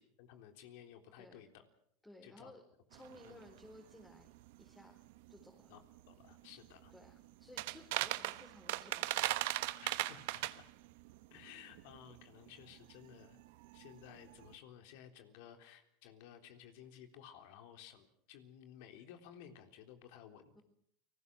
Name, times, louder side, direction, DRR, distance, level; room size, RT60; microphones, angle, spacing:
voice 1, 0.0-1.6 2.2-2.5 3.2-3.4 5.7-6.9 9.8-10.7 11.3-13.4 13.7-20.6, left 9 dB, 70° left, 6 dB, 3.7 m, -56 dB
voice 2, 2.0-2.6 2.9-4.3 4.6-5.0 5.3-5.7 6.9-9.3 10.3-10.4 20.5-20.6, left 1 dB, 10° left, 1 dB, 4.4 m, -57 dB
sound 1, 2.9-14.5, right 18 dB, 70° right, 1.1 m, -41 dB
29.5 x 20.0 x 6.4 m, 0.69 s
hypercardioid pair, 100°, 0 cm